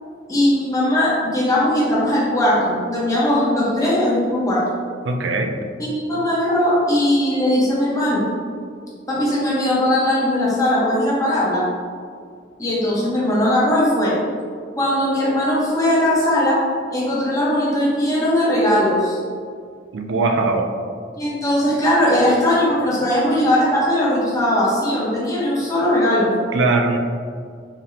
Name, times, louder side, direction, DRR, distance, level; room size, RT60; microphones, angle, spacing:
voice 1, 0.3-4.6 5.8-8.2 9.1-11.7 12.6-14.2 14.8-16.6 16.9-19.2 21.1-26.3, left 1 dB, 20° left, -7 dB, 1.2 m, -19 dB
voice 2, 5.0-5.6 19.9-20.7 26.5-27.0, right 3 dB, 85° right, 4 dB, 0.4 m, -20 dB
4.8 x 3.5 x 2.8 m, 2.1 s
head